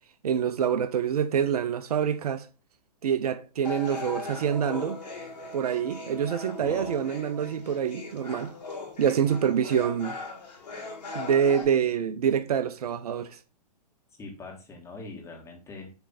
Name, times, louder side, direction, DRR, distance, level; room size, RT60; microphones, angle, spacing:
voice 1, 0.2-2.5 3.0-5.0 5.5-8.5 9.0-10.2 11.1-13.4, right 8 dB, 65° right, 0.7 m, -26 dB
sound 1, 3.6-11.6, left 3 dB, 80° left, 2.9 m, -39 dB
voice 2, 6.6-7.0 14.2-15.9, left 3 dB, 15° left, 1.7 m, -43 dB
6.8 x 3.3 x 4.2 m
figure-of-eight pair, 120°, 21 cm